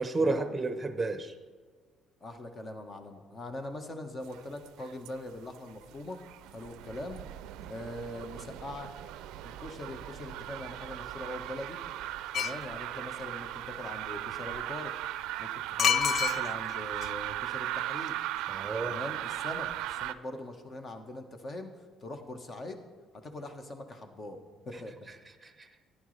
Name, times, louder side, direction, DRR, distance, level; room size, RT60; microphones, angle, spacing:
voice 1, 0.0-1.3 18.5-18.9 25.4-25.7, right 3 dB, 15° right, 9 dB, 0.9 m, -31 dB
voice 2, 2.2-6.2 6.5-7.2 7.7-8.9 9.4-11.8 12.3-14.9 15.4-18.2 18.8-22.8 23.1-25.0, left 1 dB, 35° left, 6 dB, 1.3 m, -42 dB
sound 1, 4.2-5.2 5.4-20.1, right 14 dB, 85° right, 0.4 m, -37 dB
sound 2, 12.3-12.6 15.8-16.7 17.0-17.1, left 8 dB, 50° left, 0.4 m, -26 dB
14.0 x 10.0 x 3.3 m, 1.5 s
cardioid pair, 100°, 0 cm